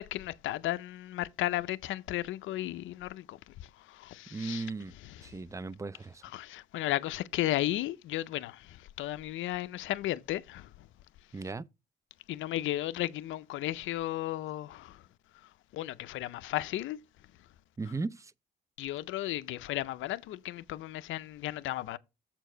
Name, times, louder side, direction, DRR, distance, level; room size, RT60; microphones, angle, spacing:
voice 1, 0.0-3.4 4.0-4.6 6.3-8.6 9.0-10.6 12.3-14.9 15.7-17.0 18.8-22.0, left 15 dB, 80° left, 0.5 m, -34 dB
voice 2, 4.3-4.9 5.2-6.2 11.3-11.7 17.8-18.3, right 3 dB, 15° right, 0.4 m, -37 dB
7.3 x 4.5 x 5.0 m
cardioid pair, 90°, 20 cm